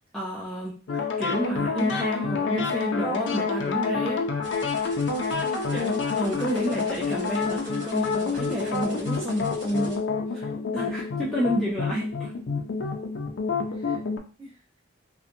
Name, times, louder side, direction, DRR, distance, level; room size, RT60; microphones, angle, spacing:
voice 1, 0.1-4.3 5.7-10.1 10.3-10.5 10.7-12.3, equal, ahead, -7 dB, 0.4 m, -30 dB
sound 1, 0.9-14.2, left 5 dB, 70° left, 0.4 m, -28 dB
sound 2, 4.4-9.9, right 1 dB, 75° right, 1.3 m, -46 dB
voice 2, 5.3-6.0 6.4-6.7 8.5-8.6 13.7-14.0 14.4-14.8, left 1 dB, 30° right, -3 dB, 0.9 m, -48 dB
2.7 x 2.1 x 2.5 m, 0.36 s
head